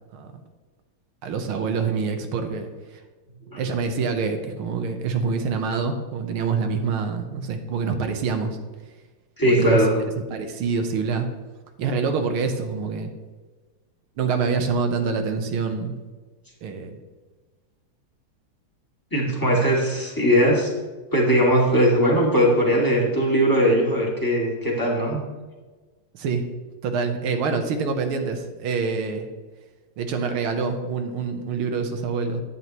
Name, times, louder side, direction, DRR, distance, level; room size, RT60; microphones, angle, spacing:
voice 1, 1.2-2.7 3.6-8.6 9.4-9.8 10.3-11.3 11.8-13.1 14.2-15.9 16.6-17.0 26.1-26.5 26.8-29.3 30.0-32.4, right 5 dB, 75° right, 6 dB, 1.7 m, -26 dB
voice 2, 9.4-10.0 19.1-20.7 21.1-25.2, equal, 10° left, -3 dB, 1.9 m, -19 dB
9.7 x 9.5 x 3.0 m, 1.3 s
omnidirectional pair, 2.4 m